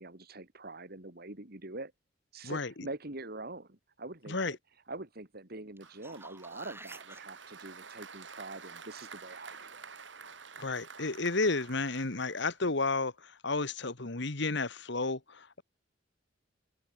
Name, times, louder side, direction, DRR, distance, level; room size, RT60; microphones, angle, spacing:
voice 1, 0.0-1.9 2.3-4.6 4.9-9.9, right 2 dB, 55° right, 3.0 m, -44 dB
voice 2, 4.3-4.6 10.6-15.6, left 3 dB, 65° left, 1.8 m, -32 dB
sound 1, 5.8-7.2 12.0-12.1, right 2 dB, 10° right, 3.1 m, -50 dB
Applause, 5.8-12.9, right 5 dB, 70° right, 4.3 m, -50 dB
head